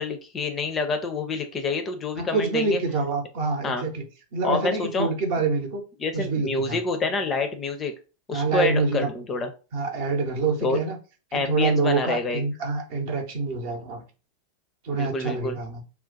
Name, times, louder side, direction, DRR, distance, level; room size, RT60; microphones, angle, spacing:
voice 1, 0.0-2.8 3.6-3.9 4.4-5.1 6.0-7.9 8.3-9.5 10.6-10.8 11.3-12.4 14.9-15.6, left 3 dB, 25° left, 7 dB, 0.4 m, -27 dB
voice 2, 2.1-4.0 4.3-5.8 6.1-6.8 8.3-9.1 9.7-11.0 11.3-14.0 14.8-15.8, right 4 dB, 50° right, 4 dB, 0.7 m, -26 dB
2.3 x 2.2 x 3.8 m, 0.34 s
figure-of-eight pair, 90°, 0 cm